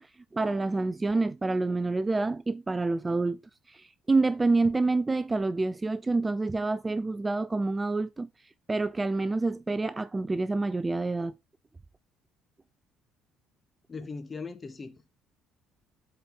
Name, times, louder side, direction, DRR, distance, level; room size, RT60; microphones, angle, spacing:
voice 1, 0.0-3.4 3.7-8.3 8.7-11.3, right 3 dB, 20° right, 0.3 m, -27 dB
voice 2, 13.9-15.1, left 4 dB, 30° left, 0.8 m, -39 dB
7.6 x 4.3 x 3.7 m
figure-of-eight pair, 55°, 0 cm